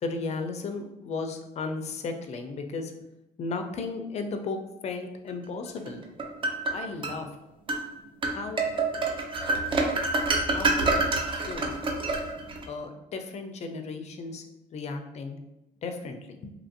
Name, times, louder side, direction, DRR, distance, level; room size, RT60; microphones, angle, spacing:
voice 1, 0.0-2.9 3.4-4.6 4.8-6.0 6.7-7.3 8.3-8.6 10.4-11.8 12.7-14.4 14.7-15.4 15.8-16.5, left 4 dB, 40° left, 5 dB, 0.4 m, -35 dB
sound 1, 5.9-7.2 7.7-7.9 8.2-12.7, right 3 dB, 30° right, 0.4 m, -27 dB
2.8 x 2.4 x 2.6 m, 0.92 s
cardioid pair, 110°, 17 cm